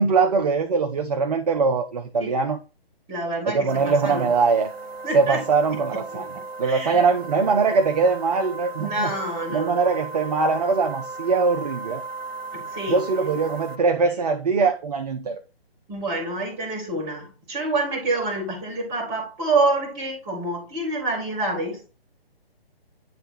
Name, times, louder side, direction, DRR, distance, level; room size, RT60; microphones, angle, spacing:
voice 1, 0.0-2.6 3.5-4.7 5.1-9.1 9.5-12.0 12.9-15.4, right 4 dB, 40° right, 0.6 m, -22 dB
voice 2, 3.1-4.3 5.0-5.4 5.7-6.2 6.6-7.0 8.8-9.8 12.5-13.0 15.9-21.8, right 2 dB, 15° right, 2.0 m, -27 dB
sound 1, 3.7-13.8, right 3 dB, 80° right, 0.9 m, -36 dB
9.1 x 3.3 x 4.3 m
figure-of-eight pair, 140°, 31 cm